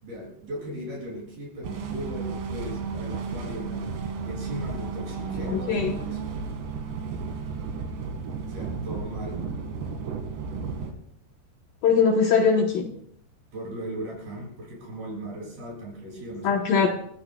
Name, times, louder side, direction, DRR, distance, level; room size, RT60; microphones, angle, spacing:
voice 1, 0.0-6.2 8.4-9.4 13.5-16.9, right 1 dB, 55° right, -3 dB, 9.0 m, -37 dB
sound 1, 1.6-10.9, right 5 dB, 80° right, 4.1 m, -33 dB
voice 2, 5.5-5.9 11.8-12.9 16.4-16.9, left 5 dB, 70° left, 2 dB, 2.3 m, -21 dB
29.0 x 16.0 x 2.3 m, 0.71 s
omnidirectional pair, 5.0 m